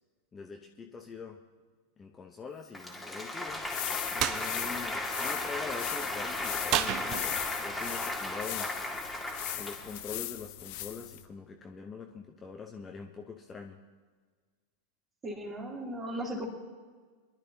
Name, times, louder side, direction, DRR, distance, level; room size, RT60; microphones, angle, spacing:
voice 1, 0.3-1.4 2.0-3.7 4.1-8.7 9.5-13.8, left 5 dB, 20° left, 2 dB, 1.0 m, -43 dB
Applause, 2.7-10.1, left 1 dB, 5° left, 2.0 m, -36 dB
sound 1, 3.5-11.3, left 15 dB, 45° left, 0.8 m, -39 dB
sound 2, 4.2-4.4 6.7-7.6, right 11 dB, 40° right, 0.7 m, -30 dB
voice 2, 15.2-16.5, right 1 dB, 20° right, 0 dB, 3.0 m, -36 dB
24.5 x 12.0 x 2.9 m, 1.5 s
figure-of-eight pair, 90°, 0 cm